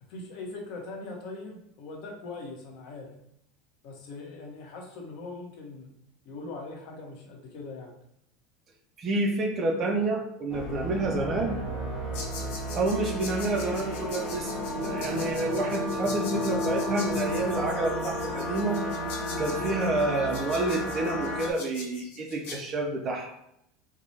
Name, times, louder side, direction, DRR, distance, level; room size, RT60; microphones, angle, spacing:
voice 1, 0.0-3.1 3.8-5.9 6.2-7.9, left 3 dB, 55° left, 0 dB, 1.1 m, -41 dB
voice 2, 9.0-11.6 12.8-18.8 19.4-23.4, right 2 dB, 25° right, 2 dB, 0.6 m, -29 dB
sound 1, 10.5-21.5, equal, 15° left, 1.2 m, -32 dB
sound 2, 12.1-22.6, left 4 dB, 85° left, 1.7 m, -43 dB
4.8 x 2.3 x 4.1 m, 0.75 s
supercardioid pair, 165°, 0 cm